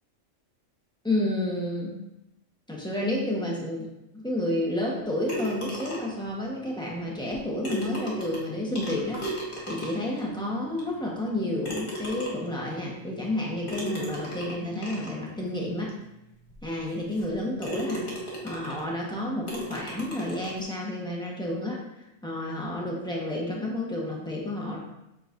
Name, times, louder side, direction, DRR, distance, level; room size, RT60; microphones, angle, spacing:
voice 1, 1.0-1.9 2.7-16.0 16.6-18.1 18.4-21.8 22.2-24.8, left 1 dB, 5° left, -4 dB, 1.0 m, -30 dB
sound 1, 5.3-6.2 7.3-7.4 7.6-10.2 10.8-10.9 11.6-12.6 13.7-15.2 15.9-16.0 16.5-16.6 17.1-17.3 17.6-18.9 19.5-20.6, right 1 dB, 45° left, 1.8 m, -36 dB
7.8 x 4.7 x 2.6 m, 0.91 s
omnidirectional pair, 1.4 m